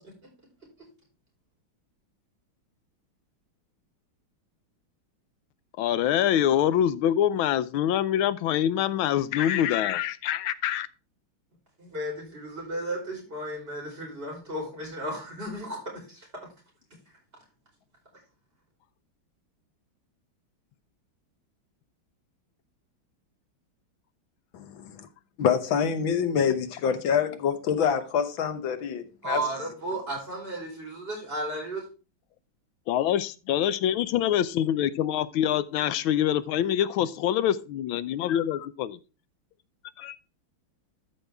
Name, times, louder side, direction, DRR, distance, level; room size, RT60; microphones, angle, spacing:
voice 1, 5.8-10.9 32.9-39.0 40.0-40.2, left 11 dB, 90° left, 1.5 m, -25 dB
voice 2, 11.8-16.3 29.2-31.8, right 1 dB, 25° right, 4.7 m, -34 dB
voice 3, 24.5-25.1 25.4-29.4, left 7 dB, 75° left, 1.8 m, -26 dB
13.0 x 5.5 x 3.4 m
omnidirectional pair, 2.2 m